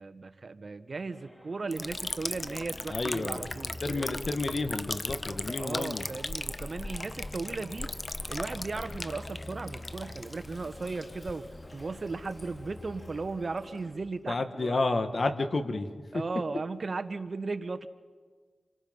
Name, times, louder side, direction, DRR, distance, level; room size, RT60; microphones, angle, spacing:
voice 1, 0.0-4.2 5.6-7.9 8.3-11.5 11.7-14.8 16.1-17.9, right 3 dB, 55° right, 9 dB, 1.3 m, -36 dB
sound 1, 1.1-13.9, equal, 10° left, 4.3 m, -53 dB
Liquid, 1.7-14.2, left 2 dB, 35° left, 1.0 m, -38 dB
voice 2, 2.9-3.4 3.8-6.0 14.3-15.9, left 3 dB, 55° left, 7 dB, 2.0 m, -30 dB
29.0 x 23.5 x 5.6 m, 1.5 s
cardioid pair, 45°, 0 cm